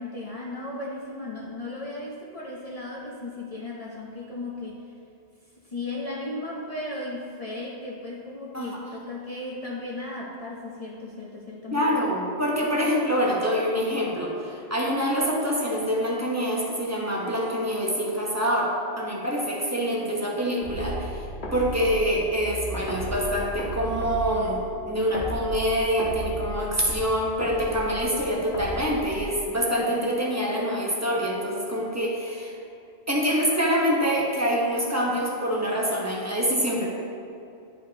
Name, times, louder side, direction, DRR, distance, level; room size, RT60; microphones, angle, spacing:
voice 1, 0.0-4.8 5.7-11.9, left 2 dB, 40° left, -5 dB, 0.8 m, -35 dB
voice 2, 11.7-21.3 21.5-32.5 33.1-36.9, equal, 15° right, -3 dB, 0.9 m, -25 dB
sound 1, 20.6-29.7, equal, 80° left, 1.9 m, -35 dB
10.5 x 5.2 x 2.8 m, 2.7 s
omnidirectional pair, 1.1 m